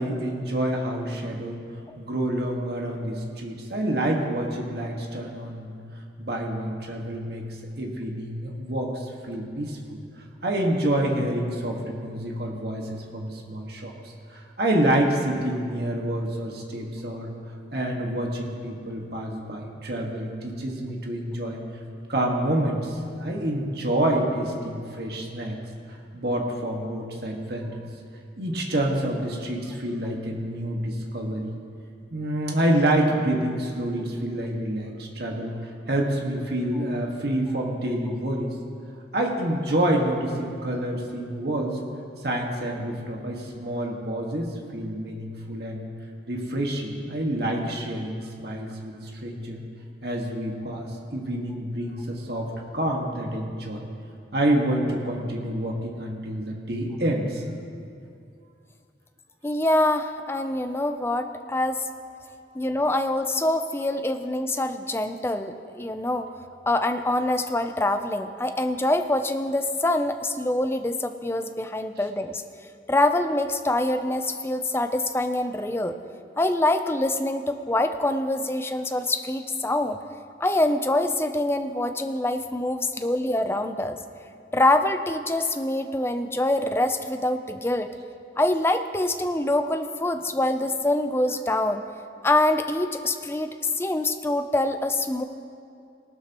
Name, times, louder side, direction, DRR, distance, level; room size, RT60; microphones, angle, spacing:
voice 1, 0.0-1.6 2.0-5.7 6.2-7.4 7.8-10.0 10.4-13.9 14.3-17.3 17.7-21.6 22.1-25.6 26.1-27.8 28.4-31.5 32.1-38.5 39.1-41.8 42.2-45.8 46.3-48.9 49.2-49.6 50.0-53.8 54.3-57.4 83.0-83.1, right 1 dB, 60° right, 0 dB, 1.7 m, -27 dB
voice 2, 59.4-61.9 62.5-66.3 66.7-72.4 72.9-76.0 76.4-80.0 80.4-84.0 84.5-88.0 88.4-91.8 92.2-93.5 93.8-95.2, left 1 dB, 15° left, 8 dB, 0.5 m, -25 dB
18.5 x 12.5 x 3.0 m, 2.5 s
head